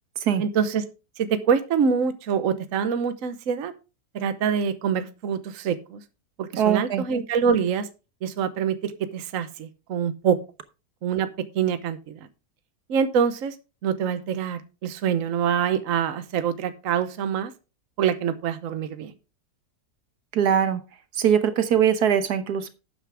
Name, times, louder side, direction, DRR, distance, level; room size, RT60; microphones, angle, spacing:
voice 1, 0.4-0.8 1.2-3.7 4.1-6.0 6.4-7.9 8.2-10.4 11.0-12.2 12.9-13.5 13.8-17.5 18.0-19.1, right 7 dB, 60° right, 10 dB, 1.2 m, -25 dB
voice 2, 6.5-7.0 20.3-20.8 21.2-22.7, right 8 dB, 75° right, 10 dB, 1.5 m, -21 dB
12.0 x 8.4 x 3.4 m, 0.30 s
omnidirectional pair, 1.7 m